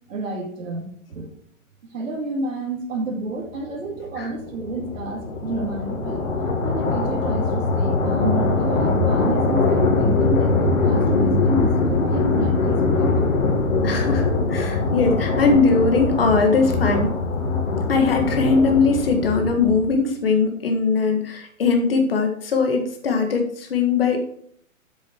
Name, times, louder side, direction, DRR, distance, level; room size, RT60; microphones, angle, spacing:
voice 1, 0.1-1.3 1.9-6.3 6.6-10.5 10.8-13.1, right 2 dB, 65° right, 0 dB, 2.5 m, -30 dB
sound 1, 3.8-20.1, left 3 dB, 75° left, 2.6 m, -22 dB
voice 2, 13.8-17.1 17.9-24.2, left 4 dB, 45° left, 4 dB, 1.8 m, -20 dB
8.3 x 6.4 x 4.6 m, 0.64 s
hypercardioid pair, 175°, 41 cm